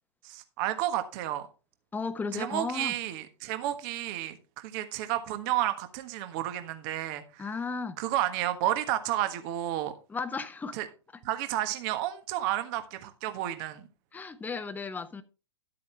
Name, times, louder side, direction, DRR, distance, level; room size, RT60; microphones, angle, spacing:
voice 1, 0.2-1.5 2.3-7.4 8.0-9.9 10.7-10.8 11.2-13.9, right 13 dB, 45° right, 1.4 m, -31 dB
voice 2, 1.9-3.0 7.4-8.0 10.1-10.8 14.1-15.2, left 4 dB, 10° left, 1.0 m, -34 dB
12.0 x 8.4 x 3.3 m
figure-of-eight pair, 105°, 16 cm